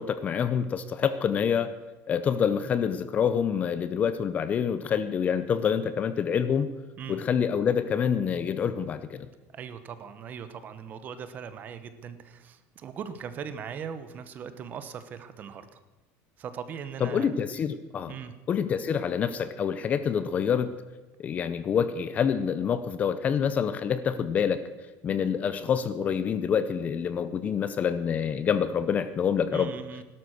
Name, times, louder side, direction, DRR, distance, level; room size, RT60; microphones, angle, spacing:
voice 1, 0.0-1.7 2.1-6.7 7.1-9.3 17.0-18.1 18.5-20.7 21.2-24.6 25.0-29.7, left 7 dB, 25° left, 12 dB, 0.6 m, -27 dB
voice 2, 9.5-15.8 16.4-17.4 18.1-18.3 29.5-30.0, right 7 dB, 25° right, 11 dB, 1.0 m, -39 dB
17.0 x 12.5 x 6.4 m, 1.2 s
cardioid pair, 180°, 6 cm